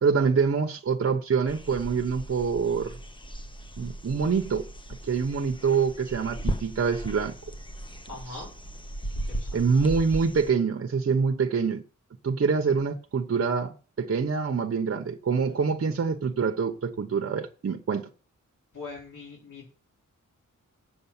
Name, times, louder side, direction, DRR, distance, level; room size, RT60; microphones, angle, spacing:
voice 1, 0.0-3.0 3.8-4.7 5.0-7.3 9.5-11.8 12.2-18.0, right 5 dB, 45° right, 1.0 m, -25 dB
sound 1, 1.5-10.5, right 1 dB, 15° left, 0.9 m, -37 dB
voice 2, 8.1-8.5 9.1-9.6 18.7-19.7, left 3 dB, 70° left, 4.1 m, -41 dB
8.7 x 7.1 x 7.2 m
wide cardioid pair, 155°, 31 cm